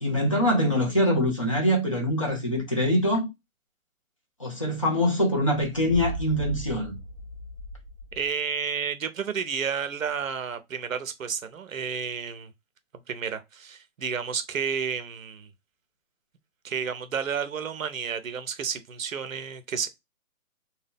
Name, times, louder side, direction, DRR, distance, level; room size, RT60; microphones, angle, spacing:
voice 1, 0.0-3.3 4.4-7.0, equal, 25° left, 0.5 m, -24 dB
sound 1, 5.5-8.3, right 2 dB, 40° left, 0.9 m, -36 dB
voice 2, 8.1-12.5 13.1-15.5 16.6-19.9, right 6 dB, 65° right, 0.7 m, -31 dB
2.7 x 2.2 x 3.4 m
hypercardioid pair, 165°, 42 cm